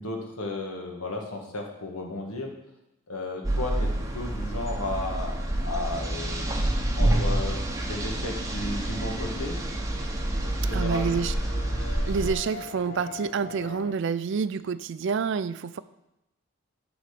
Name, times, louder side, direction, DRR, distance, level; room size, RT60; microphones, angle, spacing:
voice 1, 0.0-2.5 3.1-5.3 5.6-6.5 6.9-7.6 7.9-9.6 10.5-11.2, left 2 dB, 85° left, 1 dB, 1.6 m, -34 dB
sound 1, 3.4-12.3, right 1 dB, 15° right, 0.8 m, -28 dB
sound 2, 8.5-13.9, left 4 dB, 55° left, 0.9 m, -43 dB
voice 2, 10.7-11.3 12.1-15.8, right 5 dB, 55° right, 15 dB, 0.3 m, -28 dB
9.9 x 4.0 x 6.6 m, 0.88 s
head